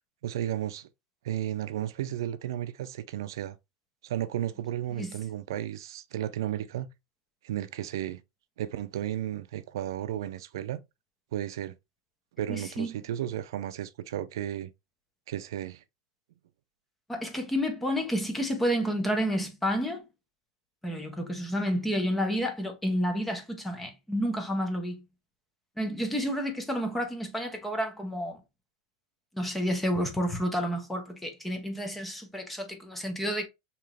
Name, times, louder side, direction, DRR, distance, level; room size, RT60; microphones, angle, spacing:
voice 1, 0.2-0.9 1.2-3.6 4.0-6.9 7.4-8.2 8.6-10.8 11.3-11.7 12.4-14.7 15.3-15.8, right 11 dB, 80° right, 0.4 m, -33 dB
voice 2, 12.5-12.9 17.1-20.0 20.8-25.0 25.8-28.4 29.3-33.5, equal, 5° left, 0.6 m, -30 dB
4.8 x 2.9 x 2.3 m
supercardioid pair, 175°, 2 cm